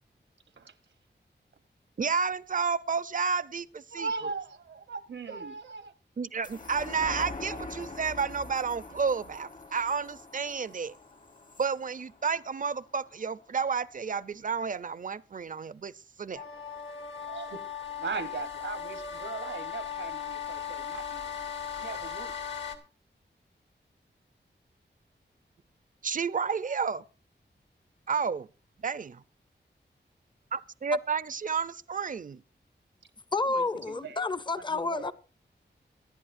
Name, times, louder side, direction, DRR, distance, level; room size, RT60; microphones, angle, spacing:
voice 1, 2.0-4.1 6.2-10.9 11.6-15.9 16.2-16.4 26.0-27.0 28.1-28.5 28.8-29.2 30.5-32.4, right 5 dB, 45° right, 0.5 m, -31 dB
voice 2, 3.9-5.9 17.3-17.6 18.0-21.3 21.8-22.3 33.5-34.2 34.6-35.1, right 4 dB, 80° right, 1.1 m, -39 dB
sound 1, 6.4-13.2 13.6-13.7, left 2 dB, 45° left, 1.2 m, -44 dB
sound 2, 16.3-22.8, left 8 dB, 75° left, 2.2 m, -38 dB
voice 3, 33.3-35.1, left 3 dB, 25° left, 0.6 m, -30 dB
24.0 x 10.5 x 2.6 m
wide cardioid pair, 70°, 19 cm